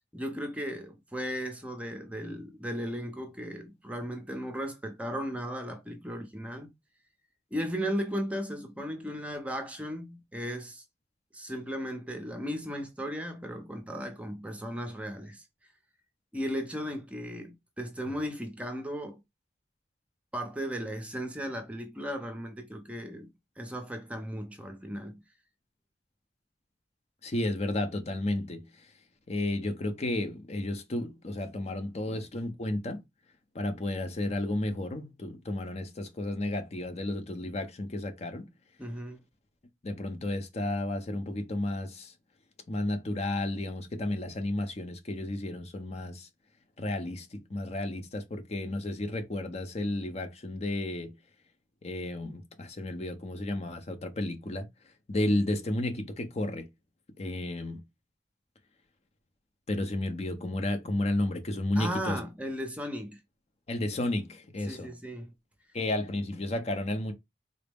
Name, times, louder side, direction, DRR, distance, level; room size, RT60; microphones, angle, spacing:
voice 1, 0.1-6.7 7.5-10.8 11.3-15.4 16.3-19.2 20.3-23.3 23.6-25.2 32.0-32.2 38.8-39.2 61.8-63.2 64.7-65.3, equal, 10° right, 0.6 m, -36 dB
voice 2, 27.2-28.9 29.3-33.0 33.5-38.5 39.8-42.1 42.7-46.3 46.8-51.2 51.8-56.7 57.2-57.8 59.7-62.2 63.7-64.9 65.7-67.1, left 1 dB, 40° left, 0.6 m, -32 dB
3.9 x 2.0 x 3.4 m
head